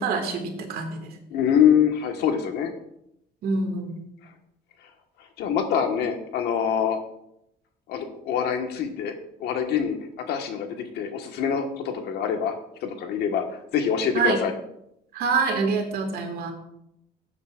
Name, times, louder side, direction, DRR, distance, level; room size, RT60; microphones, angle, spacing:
voice 1, 0.0-1.1 3.4-4.0 14.1-14.4 15.1-16.5, right 4 dB, 65° right, 4 dB, 2.0 m, -26 dB
voice 2, 1.3-2.7 5.4-7.0 7.9-9.1 9.4-10.0 10.3-12.5 12.8-13.4 13.7-14.5, left 8 dB, 75° left, 4 dB, 1.5 m, -24 dB
15.5 x 8.3 x 2.5 m, 0.79 s
cardioid pair, 110°, 17 cm